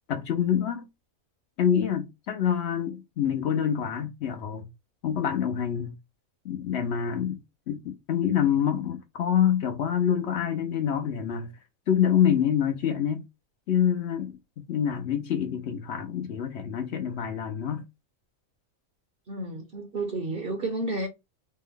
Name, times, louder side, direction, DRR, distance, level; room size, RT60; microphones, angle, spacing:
voice 1, 0.1-0.9 1.6-4.7 5.0-5.9 6.4-7.4 7.7-11.5 11.9-13.2 13.7-17.8, left 9 dB, 60° left, 0.8 m, -26 dB
voice 2, 19.3-21.1, right 2 dB, 50° right, 0.8 m, -31 dB
4.3 x 2.1 x 3.6 m
omnidirectional pair, 1.4 m